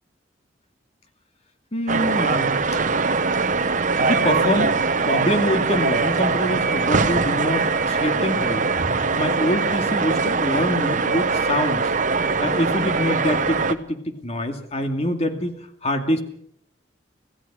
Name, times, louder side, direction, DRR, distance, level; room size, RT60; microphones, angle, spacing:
voice 1, 1.7-2.6 4.0-8.7 9.1-11.9 12.4-15.5 15.8-16.2, left 1 dB, 35° left, 6 dB, 2.4 m, -25 dB
sound 1, 1.9-13.8, right 4 dB, 45° right, 1.1 m, -22 dB
26.5 x 16.5 x 6.2 m, 0.69 s
head